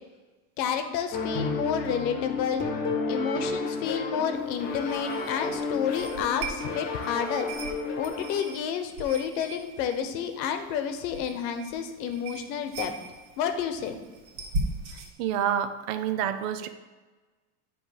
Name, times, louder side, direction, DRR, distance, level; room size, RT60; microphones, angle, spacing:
voice 1, 0.6-2.6 3.1-7.5 8.0-12.9 13.4-14.0, left 8 dB, 80° left, 8 dB, 1.1 m, -30 dB
sound 1, 1.1-8.6, left 4 dB, 20° left, 0.3 m, -32 dB
sound 2, 4.3-15.1, right 2 dB, 70° right, 2.0 m, -39 dB
voice 2, 15.2-16.7, right 9 dB, 50° right, 10 dB, 0.5 m, -28 dB
8.4 x 3.3 x 6.5 m, 1.3 s
supercardioid pair, 160°, 50 cm